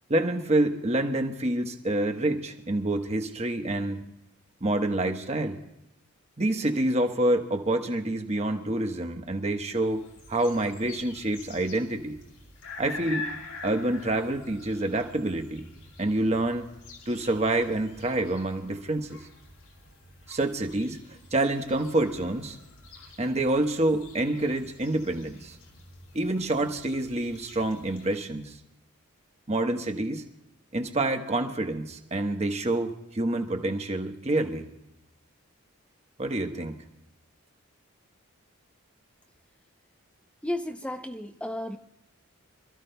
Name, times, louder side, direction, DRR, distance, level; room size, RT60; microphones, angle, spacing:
voice 1, 0.1-4.0 4.6-5.6 6.4-10.0 10.3-12.2 12.8-13.3 13.6-15.7 16.0-16.7 17.1-19.2 20.3-22.6 23.2-25.6 26.1-28.6 29.5-30.3 30.7-34.7 36.2-36.8, right 1 dB, 30° right, 5 dB, 1.2 m, -27 dB
sound 1, 9.8-28.2, left 3 dB, 85° left, 5.0 m, -46 dB
voice 2, 40.4-41.8, left 1 dB, 5° left, 5 dB, 0.6 m, -33 dB
27.0 x 14.5 x 2.3 m, 0.87 s
head